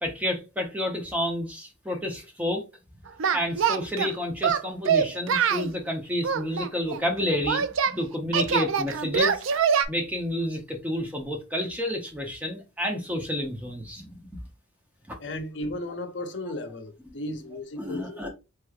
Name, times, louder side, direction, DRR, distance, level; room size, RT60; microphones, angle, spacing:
voice 1, 0.0-2.6 3.3-9.4 9.9-14.2 17.8-18.3, left 1 dB, 10° right, 0.7 m, -30 dB
Singing, 3.2-4.1 4.4-5.7 6.2-7.9 8.3-9.8, right 7 dB, 85° right, 0.4 m, -24 dB
voice 2, 15.2-18.2, left 1 dB, 60° left, 0.6 m, -35 dB
4.5 x 3.0 x 2.3 m
head